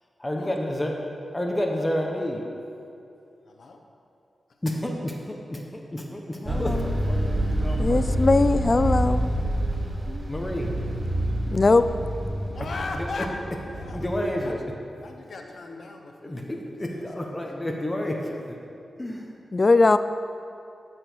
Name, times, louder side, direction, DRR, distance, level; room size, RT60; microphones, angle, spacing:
voice 1, 0.2-0.9 1.3-2.4 4.6-8.5 10.3-10.7 13.0-13.1 13.9-14.6 16.2-18.6 19.0-19.3, left 1 dB, 20° left, 1 dB, 1.2 m, -30 dB
voice 2, 3.5-3.8 5.0-5.3 9.7-9.8 12.5-13.4 13.7-14.7 15.0-17.4, left 3 dB, 65° left, 3 dB, 1.1 m, -39 dB
voice 3, 6.4-6.9 7.8-9.3 10.1-10.5 11.5-11.8 19.5-20.0, left 3 dB, 40° left, 12 dB, 0.3 m, -21 dB
sound 1, 6.5-14.3, right 1 dB, 40° right, 1.3 m, -27 dB
13.5 x 6.3 x 4.7 m, 2.6 s
cardioid pair, 65°, 0 cm